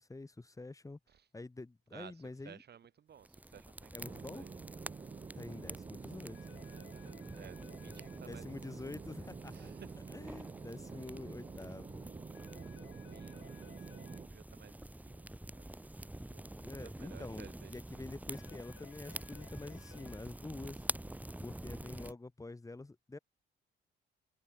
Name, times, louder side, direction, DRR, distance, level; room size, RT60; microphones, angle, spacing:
voice 1, 0.0-1.0 1.3-2.6 3.9-4.4 5.4-6.4 8.3-9.7 10.1-12.1 16.6-20.8 21.4-23.2, left 2 dB, 15° left, 1.8 m, -47 dB
voice 2, 1.9-4.5 6.6-8.6 8.9-9.2 9.5-10.1 12.4-18.1, right 8 dB, 55° right, 2.4 m, -58 dB
sound 1, 3.2-22.1, right 1 dB, 10° right, 2.1 m, -48 dB
sound 2, 4.0-14.3, right 5 dB, 25° right, 0.8 m, -48 dB
sound 3, 6.3-8.2 12.3-14.2 18.3-20.2, left 13 dB, 75° left, 1.1 m, -60 dB
cardioid pair, 90°, 20 cm